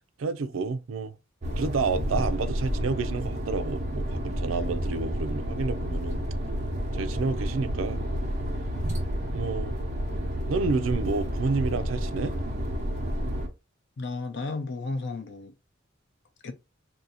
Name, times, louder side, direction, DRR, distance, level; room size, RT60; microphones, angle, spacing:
voice 1, 0.2-1.1 1.6-6.2 6.9-8.0 9.3-9.8 10.5-12.4, right 4 dB, 80° right, 0.4 m, -29 dB
sound 1, 1.4-13.5, equal, 40° right, 1.0 m, -30 dB
voice 2, 14.0-15.5 16.4-16.5, left 3 dB, 60° left, 0.6 m, -33 dB
2.7 x 2.6 x 4.0 m
head